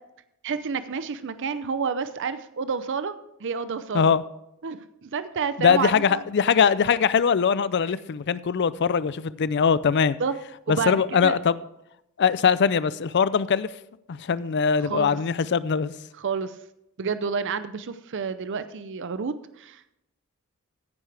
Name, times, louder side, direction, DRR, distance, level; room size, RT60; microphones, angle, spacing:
voice 1, 0.4-4.1 4.6-6.2 10.2-10.3 10.7-11.4 14.9-15.2 16.2-16.6 17.0-19.9, right 5 dB, 55° right, 0.6 m, -30 dB
voice 2, 5.6-10.2 10.7-11.5 12.2-13.7 14.1-15.9, left 6 dB, 55° left, 0.5 m, -21 dB
15.0 x 9.6 x 3.4 m
head